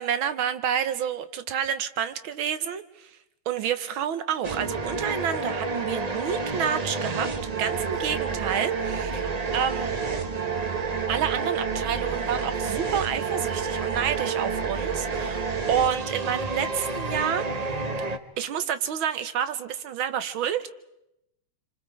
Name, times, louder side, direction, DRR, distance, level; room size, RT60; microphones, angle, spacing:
voice 1, 0.0-3.1 3.5-9.9 11.1-17.8 18.4-20.7, right 8 dB, 75° right, 11 dB, 1.8 m, -29 dB
sound 1, 4.4-18.2, right 4 dB, 40° right, 0.5 m, -29 dB
27.5 x 26.5 x 4.7 m, 0.85 s
omnidirectional pair, 2.3 m